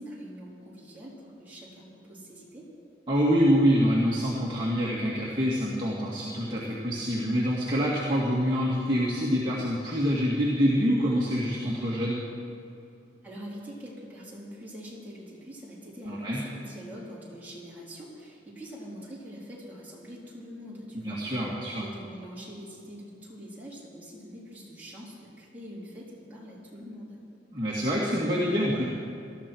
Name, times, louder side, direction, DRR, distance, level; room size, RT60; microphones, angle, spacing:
voice 1, 0.0-2.7 13.2-27.2, equal, 10° right, -7 dB, 4.2 m, -44 dB
voice 2, 3.1-12.2 16.1-16.4 21.0-21.9 27.5-28.8, equal, 25° right, -7 dB, 2.1 m, -26 dB
19.0 x 13.5 x 4.7 m, 2.7 s
head